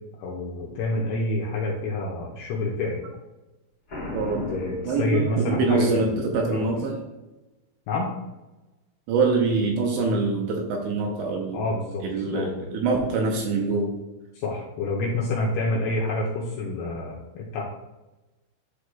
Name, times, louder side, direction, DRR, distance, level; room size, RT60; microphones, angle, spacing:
voice 1, 0.2-3.0 4.5-6.2 6.5-6.6 7.9-8.1 11.5-12.6 14.3-17.6, left 2 dB, 80° left, -3 dB, 2.4 m, -28 dB
Boom, 3.9-5.7, left 1 dB, 45° left, 1.9 m, -35 dB
voice 2, 4.1-4.5 4.9-7.0 9.1-11.6 12.0-14.0, right 4 dB, 75° right, 1 dB, 2.8 m, -24 dB
12.0 x 4.8 x 2.3 m, 1.0 s
omnidirectional pair, 5.6 m